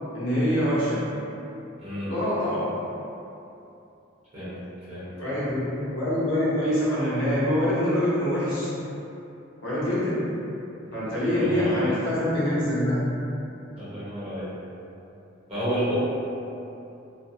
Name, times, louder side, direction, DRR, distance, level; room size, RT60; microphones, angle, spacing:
voice 1, 0.1-1.1 2.1-2.8 5.2-8.7 9.6-10.3 10.9-13.2, equal, 70° left, -10 dB, 0.9 m, -25 dB
voice 2, 1.8-2.1 4.3-4.5 4.9-5.1 11.0-11.1 11.4-11.9 13.7-14.5 15.5-16.0, equal, 30° right, -13 dB, 1.1 m, -31 dB
3.1 x 2.1 x 2.7 m, 2.8 s
head